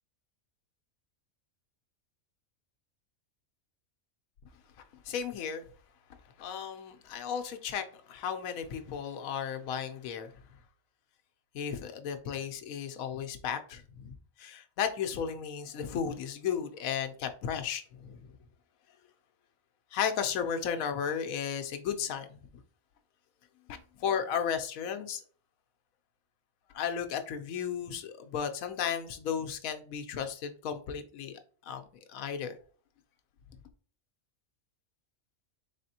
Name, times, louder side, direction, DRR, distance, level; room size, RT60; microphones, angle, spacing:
voice 1, 5.1-5.6 6.4-10.3 11.5-18.3 19.9-22.4 23.7-25.2 26.7-32.5, left 7 dB, 90° left, 1.1 m, -34 dB
4.1 x 3.5 x 2.7 m
omnidirectional pair, 1.4 m